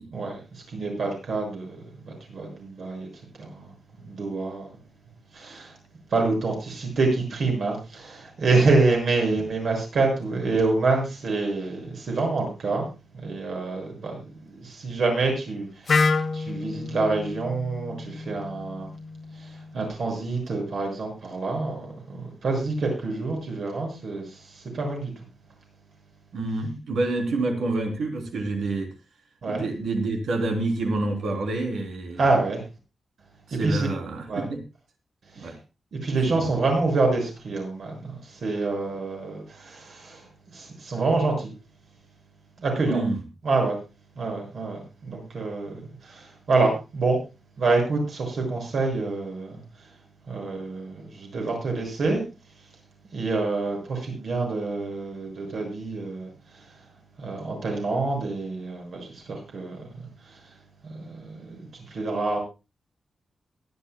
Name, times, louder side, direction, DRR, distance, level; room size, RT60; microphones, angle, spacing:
voice 1, 0.1-1.8 2.0-3.1 3.4-3.7 4.0-4.8 5.3-5.8 6.1-12.9 13.1-18.9 19.3-25.1 29.4-29.6 32.2-32.6 33.5-33.9 34.3-34.4 35.3-35.5 35.9-41.5 42.6-43.0 43.4-43.8 44.2-47.2 47.6-49.6 50.3-52.2 53.1-56.6 57.2-60.4 60.9-62.4, right 3 dB, 55° right, 1 dB, 6.5 m, -27 dB
Wind instrument woodwind instrument, 15.9-19.8, left 4 dB, 40° left, 0.9 m, -28 dB
voice 2, 26.3-28.9 29.5-32.3 33.5-34.6 35.4-35.6 36.3-36.6 42.9-43.2, right 2 dB, 80° right, 4 dB, 3.7 m, -28 dB
22.5 x 11.0 x 2.3 m, 0.28 s
wide cardioid pair, 175°, 0 cm